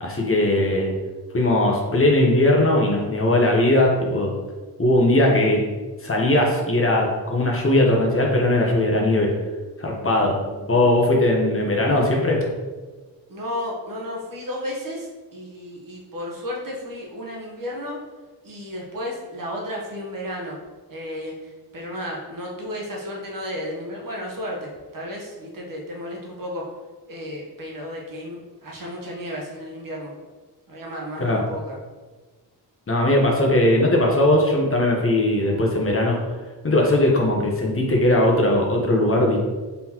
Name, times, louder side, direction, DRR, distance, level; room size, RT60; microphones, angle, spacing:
voice 1, 0.0-0.9 1.3-4.3 4.8-5.6 6.0-9.3 9.8-10.3 10.7-12.4 31.2-31.4 32.9-36.2 36.6-39.4, left 1 dB, 35° left, -1 dB, 0.9 m, -19 dB
voice 2, 10.3-10.8 13.3-18.0 18.4-20.6 20.9-26.7 27.1-30.1 30.7-31.8, left 1 dB, 55° right, -2 dB, 1.1 m, -33 dB
4.0 x 3.9 x 2.9 m, 1.3 s
wide cardioid pair, 80°, 40 cm